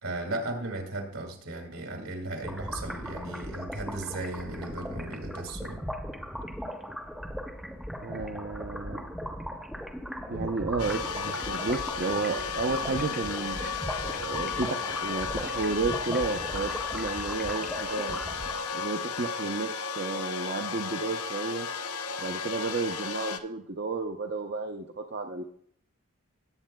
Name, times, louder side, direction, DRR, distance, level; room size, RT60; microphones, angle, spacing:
voice 1, 0.0-5.9, right 2 dB, 75° right, 3 dB, 2.0 m, -36 dB
sound 1, 2.4-18.9, equal, ahead, 0.6 m, -38 dB
voice 2, 8.0-9.0 10.3-13.6 14.2-18.2 18.7-19.7 20.0-21.7 22.2-25.4, right 3 dB, 45° right, 3 dB, 0.5 m, -32 dB
sound 2, 10.8-23.4, left 5 dB, 85° left, 0.6 m, -34 dB
18.0 x 8.2 x 2.2 m, 0.64 s
head